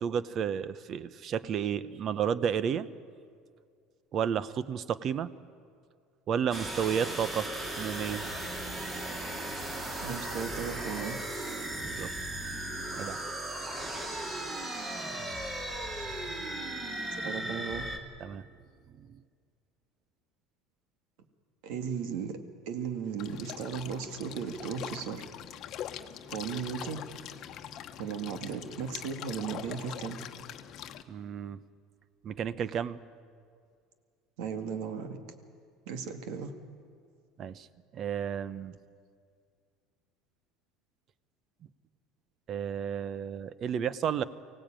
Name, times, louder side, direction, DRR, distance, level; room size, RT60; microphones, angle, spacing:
voice 1, 0.0-2.9 4.1-5.3 6.3-7.5 7.7-8.2 11.8-12.1 13.0-13.2 18.2-18.4 19.0-19.2 31.1-31.6 32.2-33.0 37.4-37.7 37.9-38.7 42.5-44.2, right 8 dB, 35° right, 16 dB, 0.7 m, -32 dB
sound 1, 6.5-18.0, right 1 dB, 20° right, 2.6 m, -36 dB
voice 2, 10.0-11.2 17.2-17.9 21.6-22.4 22.7-25.2 26.3-27.0 28.0-30.2 34.4-35.2 35.9-36.5, right 6 dB, 70° right, 7 dB, 2.1 m, -36 dB
sound 2, 23.2-31.0, left 10 dB, 45° left, 1.1 m, -43 dB
24.5 x 17.0 x 9.0 m, 2.2 s
cardioid pair, 145°, 0 cm